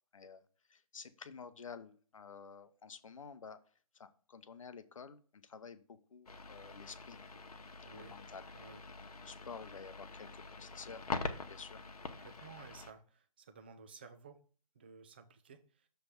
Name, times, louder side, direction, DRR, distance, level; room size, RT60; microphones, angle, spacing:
voice 1, 0.1-0.4 0.7-3.6 3.9-7.2 7.9-8.4 9.2-11.0 11.5-11.8, left 5 dB, 60° left, 11 dB, 0.8 m, -51 dB
sound 1, 6.3-12.9, left 3 dB, 90° left, 1.0 m, -45 dB
voice 2, 7.8-8.1 8.5-8.8 12.2-14.4 14.7-15.9, right 5 dB, 15° right, 8 dB, 0.4 m, -55 dB
6.7 x 3.4 x 5.7 m, 0.44 s
hypercardioid pair, 160°, 19 cm